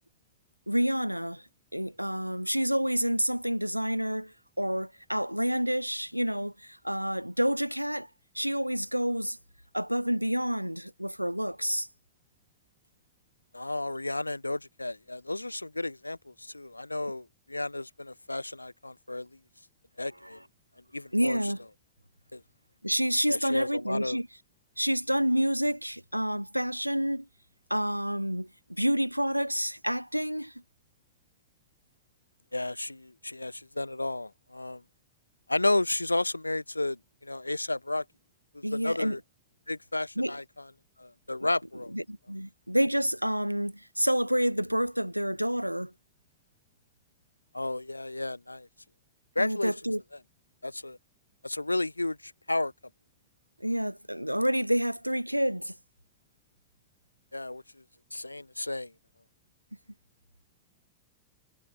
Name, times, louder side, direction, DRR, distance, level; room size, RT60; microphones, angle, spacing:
voice 1, 0.7-8.1 8.3-9.4 9.7-11.9 21.1-21.6 22.8-24.3 24.8-27.3 27.7-30.6 38.6-39.2 40.2-40.4 41.9-45.9 49.4-50.0 53.6-55.7, equal, 90° right, 0.4 m, -29 dB
voice 2, 13.5-19.3 20.0-20.4 20.9-21.4 22.3-22.4 23.3-24.2 32.5-34.8 35.5-38.0 38.5-39.2 39.7-40.7 41.0-41.9 47.5-48.7 49.4-49.7 50.6-51.0 51.4-52.7 57.3-57.6 58.1-58.9, left 2 dB, 85° left, 0.6 m, -32 dB
figure-of-eight pair, 90°, 0 cm